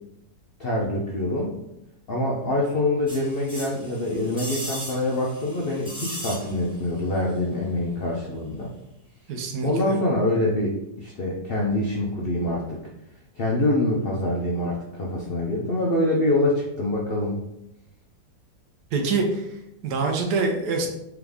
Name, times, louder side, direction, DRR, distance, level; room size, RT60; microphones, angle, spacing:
voice 1, 0.6-1.5 2.1-8.7 9.6-12.6 13.4-17.4, left 1 dB, 65° left, -3 dB, 0.5 m, -25 dB
sound 1, 3.1-6.9 7.1-7.2, right 1 dB, 5° right, 0.6 m, -37 dB
voice 2, 9.3-10.0 18.9-20.9, right 4 dB, 70° right, 3 dB, 1.2 m, -26 dB
3.7 x 3.5 x 3.4 m, 0.84 s
omnidirectional pair, 1.8 m